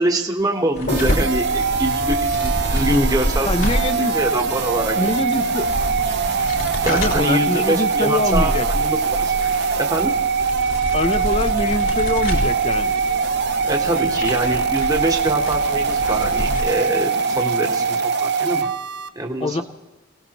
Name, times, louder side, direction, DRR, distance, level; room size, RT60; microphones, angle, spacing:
voice 1, 0.0-3.5 4.1-5.0 6.8-9.3 9.8-10.1 13.7-18.7 19.1-19.6, right 1 dB, 15° right, 2 dB, 1.2 m, -24 dB
sound 1, 0.8-16.6, equal, 70° left, 4.1 m, -27 dB
sound 2, 0.9-19.1, right 5 dB, 55° right, 0.6 m, -22 dB
sound 3, 2.3-18.0, left 1 dB, 85° left, 2.5 m, -39 dB
voice 2, 3.5-4.2 5.0-5.7 6.8-8.7 10.9-12.9 19.4-19.6, left 2 dB, 25° left, 10 dB, 0.7 m, -24 dB
26.5 x 18.0 x 3.0 m, 1.2 s
head